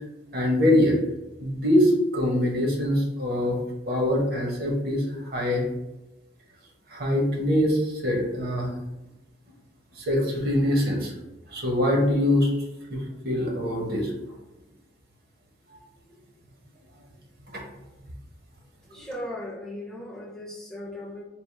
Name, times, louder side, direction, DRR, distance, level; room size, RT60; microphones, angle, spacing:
voice 1, 0.3-1.0 1.4-3.6 3.9-5.0 5.3-5.6 6.9-8.7 10.0-11.1 11.5-12.5 12.9-14.1, left 1 dB, 55° right, 0 dB, 0.9 m, -23 dB
voice 2, 18.9-21.2, left 1 dB, 5° left, -2 dB, 0.5 m, -37 dB
3.6 x 2.4 x 4.5 m, 1.0 s
head